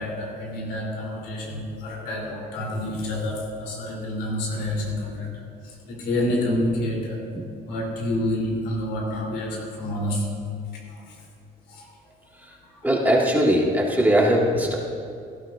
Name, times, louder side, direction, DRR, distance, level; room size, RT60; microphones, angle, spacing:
voice 1, 0.0-7.2 7.6-10.3 10.9-11.1 11.7-11.9, left 1 dB, 85° left, -3 dB, 3.4 m, -28 dB
voice 2, 12.8-14.8, equal, 10° right, -3 dB, 2.0 m, -20 dB
17.0 x 12.5 x 2.5 m, 2.3 s
cardioid pair, 110°, 17 cm